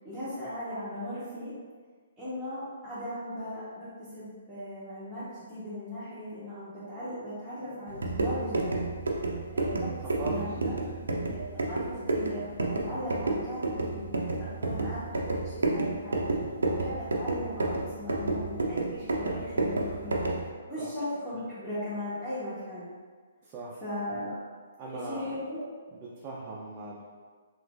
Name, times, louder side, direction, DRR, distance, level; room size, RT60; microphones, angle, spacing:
voice 1, 0.0-1.5 2.2-8.9 9.5-10.7 11.1-16.3 16.7-20.3 20.7-22.9 23.8-24.4 24.9-25.6, equal, 5° left, -17 dB, 1.1 m, -38 dB
sound 1, 7.9-20.5, right 2 dB, 80° right, 0.5 m, -31 dB
voice 2, 10.2-10.9 14.8-14.9 20.8-20.9 23.4-23.8 24.8-25.4 26.0-27.0, right 2 dB, 30° right, -5 dB, 0.5 m, -40 dB
3.1 x 2.9 x 2.5 m, 1.5 s
figure-of-eight pair, 135°, 0 cm